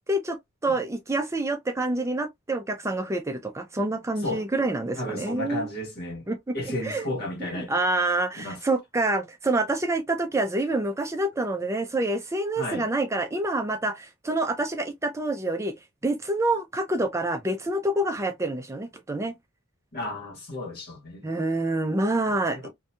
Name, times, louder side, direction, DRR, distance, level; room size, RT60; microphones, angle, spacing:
voice 1, 0.6-5.7 6.3-6.5 6.8-7.0 7.4-15.7 16.0-19.4 21.2-22.7, right 2 dB, 15° right, 0.4 m, -27 dB
voice 2, 5.0-6.3 6.5-7.8 8.4-8.6 12.6-12.9 19.9-21.3 22.3-22.7, left 1 dB, 50° left, 1.4 m, -33 dB
2.8 x 2.6 x 2.2 m
head